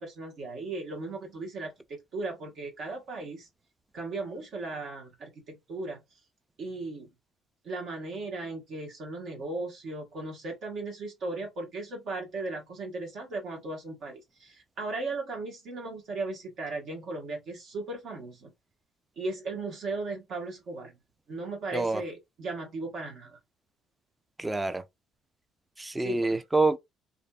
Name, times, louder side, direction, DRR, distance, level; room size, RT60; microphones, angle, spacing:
voice 1, 0.0-3.5 3.9-6.0 6.6-7.1 7.6-18.5 19.2-20.9 21.3-23.4 26.0-26.4, right 2 dB, 60° right, 1.0 m, -37 dB
voice 2, 24.4-24.8 25.8-26.8, right 3 dB, 10° right, 0.4 m, -26 dB
2.5 x 2.4 x 2.2 m
cardioid pair, 95°, 0 cm